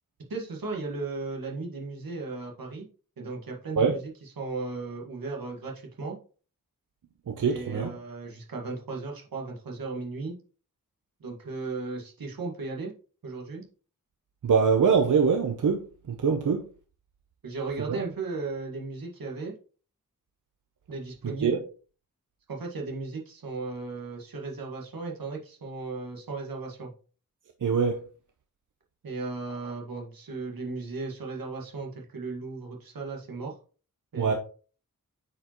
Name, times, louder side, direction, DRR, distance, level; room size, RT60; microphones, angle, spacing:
voice 1, 0.3-2.9 3.2-6.2 7.5-10.3 11.2-12.9 13.2-13.6 17.4-19.5 20.9-21.6 22.5-26.9 29.0-33.6 34.1-34.3, right 3 dB, 85° right, 1.7 m, -36 dB
voice 2, 7.3-7.9 14.4-16.6 17.9-18.0 21.4-21.6 27.6-28.0 34.2-34.3, right 6 dB, 65° right, 0.8 m, -23 dB
8.5 x 4.8 x 3.0 m
wide cardioid pair, 115°, 34 cm